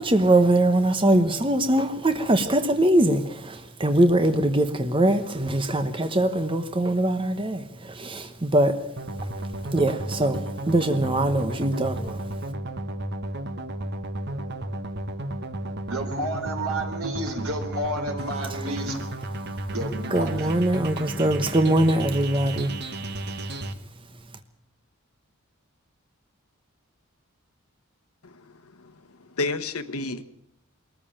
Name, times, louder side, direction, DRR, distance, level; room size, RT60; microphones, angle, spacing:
voice 1, 0.0-8.8 9.2-9.3 9.7-12.3 18.6-18.7 20.1-22.7, right 1 dB, 25° right, 1.0 m, -22 dB
sound 1, 9.0-23.7, right 1 dB, 50° right, 1.2 m, -33 dB
voice 2, 15.9-19.0 19.7-20.5, right 1 dB, 75° right, 3.8 m, -31 dB
voice 3, 28.2-28.9 29.2-30.2, left 3 dB, 80° left, 1.3 m, -31 dB
21.5 x 14.0 x 8.8 m
head